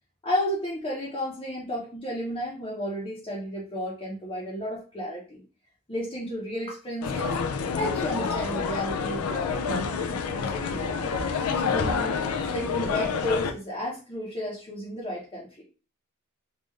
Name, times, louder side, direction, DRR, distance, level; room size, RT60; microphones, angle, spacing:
voice 1, 0.2-5.4 5.9-7.4 7.8-11.1 11.6-12.2 12.5-15.6, equal, 25° left, -6 dB, 0.9 m, -33 dB
sound 1, 7.0-13.5, left 5 dB, 80° left, 0.5 m, -28 dB
3.7 x 2.5 x 3.1 m, 0.34 s
head